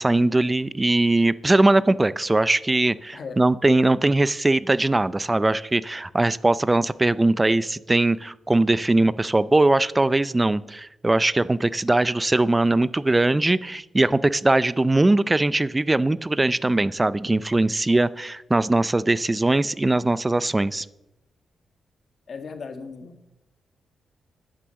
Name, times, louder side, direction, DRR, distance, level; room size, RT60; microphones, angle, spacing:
voice 1, 0.0-20.9, right 2 dB, 20° right, 18 dB, 0.5 m, -21 dB
voice 2, 22.3-23.1, left 5 dB, 55° left, 8 dB, 1.7 m, -36 dB
9.9 x 9.2 x 7.0 m, 0.93 s
cardioid pair, 85°, 0 cm